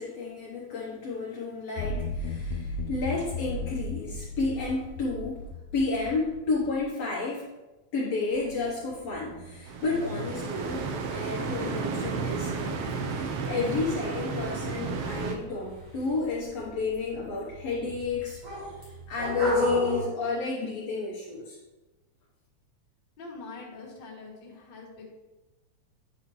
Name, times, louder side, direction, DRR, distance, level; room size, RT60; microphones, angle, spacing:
voice 1, 0.0-7.5 7.9-18.8 19.1-21.6, left 3 dB, 65° left, -5 dB, 2.0 m, -32 dB
sound 1, 1.8-6.8, left 2 dB, 85° left, 2.1 m, -35 dB
sound 2, 8.3-20.0, left 2 dB, 50° right, 3.3 m, -36 dB
sound 3, 9.7-15.4, right 5 dB, 75° right, 1.4 m, -32 dB
voice 2, 23.2-25.1, left 3 dB, 45° left, -3 dB, 1.9 m, -44 dB
9.4 x 5.7 x 3.1 m, 1.1 s
omnidirectional pair, 3.5 m